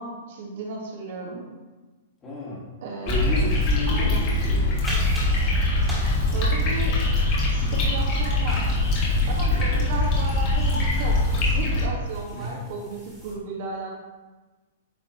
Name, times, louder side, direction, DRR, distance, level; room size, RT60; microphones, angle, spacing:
voice 1, 0.0-1.4 2.8-3.4 3.9-4.3 6.3-7.0 7.5-8.8 9.3-14.0, right 3 dB, 60° right, -2 dB, 1.7 m, -34 dB
voice 2, 2.2-2.6 3.0-4.9 9.4-9.9 12.3-12.6, left 2 dB, 20° left, -5 dB, 2.1 m, -33 dB
sound 1, 3.1-11.8, left 2 dB, 40° left, 2.2 m, -22 dB
sound 2, 4.8-13.3, left 1 dB, ahead, 2.1 m, -41 dB
9.2 x 4.4 x 3.1 m, 1.2 s
hypercardioid pair, 150°, 0 cm